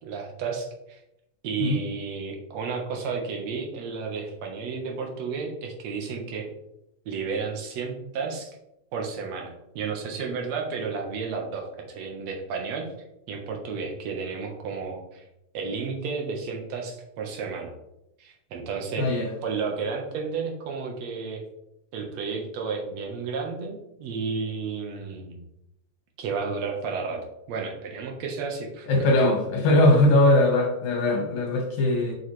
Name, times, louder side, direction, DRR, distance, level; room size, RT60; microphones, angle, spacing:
voice 1, 0.0-1.0 1.4-6.5 7.1-8.6 8.9-12.9 13.3-15.2 15.5-17.7 18.2-19.1 19.4-21.4 21.9-25.4 26.2-28.9, right 5 dB, 65° right, 2 dB, 2.3 m, -32 dB
voice 2, 19.0-19.3 28.9-32.1, left 1 dB, 80° left, 0 dB, 2.9 m, -20 dB
7.3 x 6.5 x 3.2 m, 0.83 s
omnidirectional pair, 3.4 m